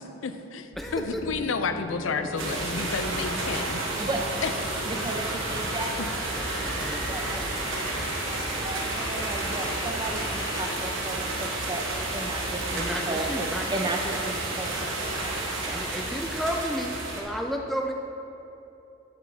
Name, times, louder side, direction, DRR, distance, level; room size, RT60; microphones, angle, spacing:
voice 1, 0.0-3.9 4.4-4.9, left 4 dB, 85° left, 8 dB, 0.5 m, -31 dB
sound 1, 0.7-10.7, left 1 dB, 65° left, 1.1 m, -39 dB
voice 2, 0.8-1.2 6.4-7.1 12.7-13.7 15.6-17.9, equal, ahead, 2 dB, 0.3 m, -32 dB
sound 2, 2.4-17.2, right 2 dB, 80° right, 1.3 m, -31 dB
voice 3, 4.9-6.5 6.8-15.8, right 2 dB, 25° right, 3 dB, 0.7 m, -35 dB
8.2 x 8.1 x 3.4 m, 2.9 s
head